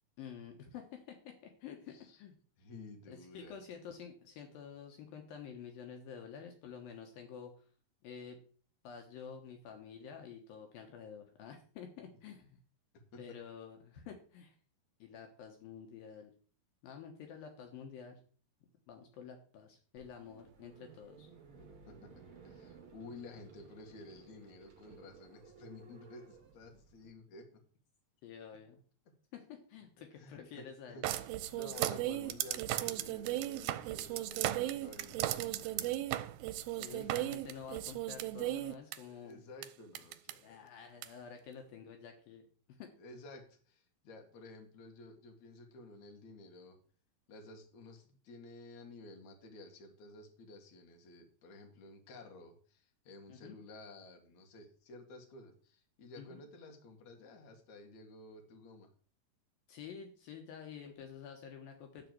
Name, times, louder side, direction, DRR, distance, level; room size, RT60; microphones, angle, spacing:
voice 1, 0.2-2.4 3.1-7.7 8.0-8.4 8.8-12.6 13.2-14.6 15.0-16.3 16.8-18.2 18.9-21.3 28.2-28.8 29.3-31.0 36.7-39.4 40.4-42.9 53.3-53.6 56.2-56.4 59.7-62.1, left 7 dB, 75° left, 3 dB, 2.9 m, -49 dB
voice 2, 1.9-2.2 2.6-3.6 12.1-12.2 13.1-13.4 21.9-27.6 30.1-31.3 31.5-35.8 36.9-37.2 39.1-40.6 43.0-46.8 47.3-58.9, left 2 dB, 55° left, 3 dB, 3.0 m, -53 dB
sound 1, 19.9-27.1, right 5 dB, 40° right, 2.3 m, -57 dB
sound 2, 31.0-39.0 39.6-39.7 39.9-40.3 41.0-41.1, right 14 dB, 85° right, 2.5 m, -36 dB
12.5 x 4.2 x 7.7 m, 0.43 s
omnidirectional pair, 4.3 m